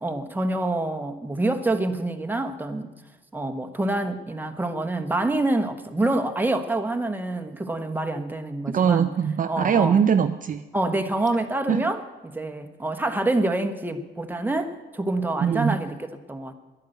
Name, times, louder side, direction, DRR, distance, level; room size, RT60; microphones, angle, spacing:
voice 1, 0.0-2.9 3.3-9.1 9.5-10.0 10.7-12.0 12.3-16.5, right 2 dB, 10° right, 6 dB, 1.2 m, -26 dB
voice 2, 8.7-10.6 11.7-11.8 15.4-15.8, right 7 dB, 40° right, 9 dB, 0.6 m, -22 dB
11.0 x 10.5 x 7.9 m, 1.2 s
cardioid pair, 90°, 20 cm